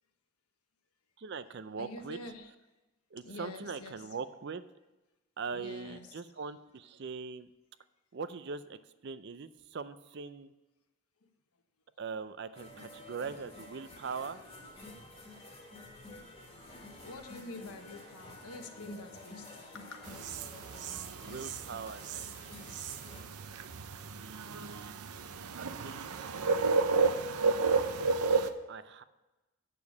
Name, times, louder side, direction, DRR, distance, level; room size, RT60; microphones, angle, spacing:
voice 1, 1.2-2.2 3.1-4.6 5.4-7.5 8.1-10.5 12.0-14.4 21.1-22.3 24.0-25.0 25.6-26.5 28.7-29.0, right 5 dB, 50° right, 0.4 m, -41 dB
voice 2, 1.8-2.5 3.2-4.1 5.5-6.1 16.7-19.5 19.8-20.2, left 2 dB, 90° left, 1.2 m, -46 dB
sound 1, 12.5-23.2, left 2 dB, 25° left, 1.6 m, -50 dB
sound 2, 20.1-28.5, right 4 dB, 90° right, 0.7 m, -32 dB
8.4 x 6.8 x 7.1 m
head